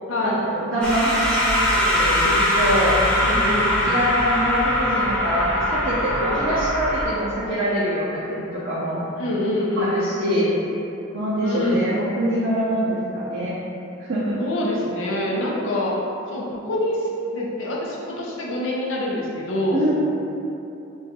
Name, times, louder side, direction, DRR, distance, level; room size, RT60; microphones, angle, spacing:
voice 1, 0.2-3.0 3.8-9.0 9.8-10.6 11.1-13.5 14.0-14.4 19.7-19.9, equal, 50° right, -10 dB, 0.5 m, -24 dB
sound 1, 0.8-7.1, equal, 5° left, 0.4 m, -21 dB
voice 2, 3.2-4.0 9.2-10.0 11.4-11.9 14.4-15.9 16.3-19.8, left 1 dB, 75° left, -4 dB, 0.5 m, -25 dB
2.5 x 2.3 x 4.0 m, 2.8 s
head